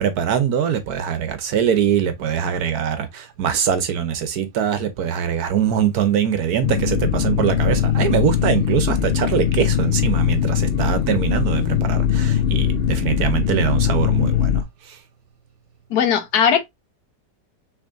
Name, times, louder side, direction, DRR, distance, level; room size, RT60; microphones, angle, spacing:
voice 1, 0.0-14.5, right 8 dB, 65° right, 1.2 m, -22 dB
sound 1, 6.6-14.6, left 9 dB, 85° left, 0.5 m, -20 dB
voice 2, 15.9-16.6, left 8 dB, 65° left, 1.2 m, -18 dB
5.9 x 3.4 x 2.5 m
omnidirectional pair, 1.9 m